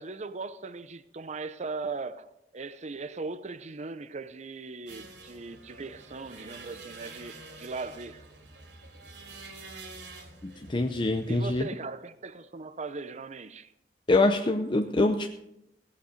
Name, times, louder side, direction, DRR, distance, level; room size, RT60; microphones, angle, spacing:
voice 1, 0.0-8.2 11.3-13.7, right 3 dB, 40° right, 0.6 m, -39 dB
sound 1, 4.9-11.7, right 3 dB, 80° right, 2.9 m, -47 dB
voice 2, 10.4-11.6 14.1-15.3, left 2 dB, 30° left, 0.6 m, -25 dB
17.5 x 8.1 x 5.1 m
head